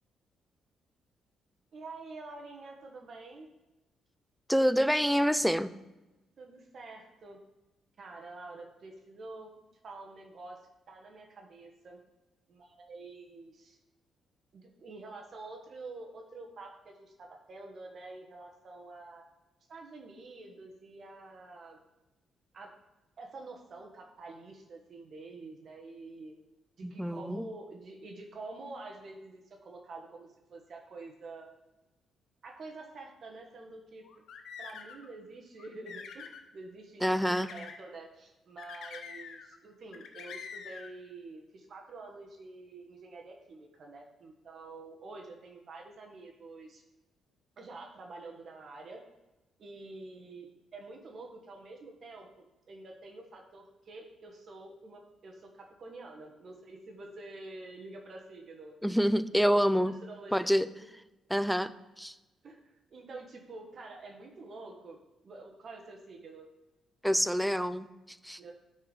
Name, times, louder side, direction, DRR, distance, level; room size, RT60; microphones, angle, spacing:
voice 1, 1.7-3.5 6.4-7.4 8.0-9.5 9.8-10.6 10.9-12.0 12.5-13.8 14.5-19.2 19.7-21.8 22.5-22.7 23.2-26.3 26.8-31.5 32.4-34.0 34.6-46.8 47.6-49.0 49.6-58.7 59.8-60.5 62.4-66.5 68.4-68.5, right 3 dB, 50° right, 1 dB, 1.4 m, -47 dB
voice 2, 4.5-5.7 26.8-27.4 37.0-37.5 58.8-60.0 60.3-60.7 61.3-61.7 62.0-62.1 67.0-68.4, equal, ahead, 14 dB, 0.4 m, -27 dB
sound 1, 34.0-35.1 35.6-36.4 37.2-37.8 38.6-39.6 39.9-40.9, left 6 dB, 75° left, 1.0 m, -45 dB
9.5 x 4.6 x 5.1 m, 1.0 s
cardioid pair, 120°, 0 cm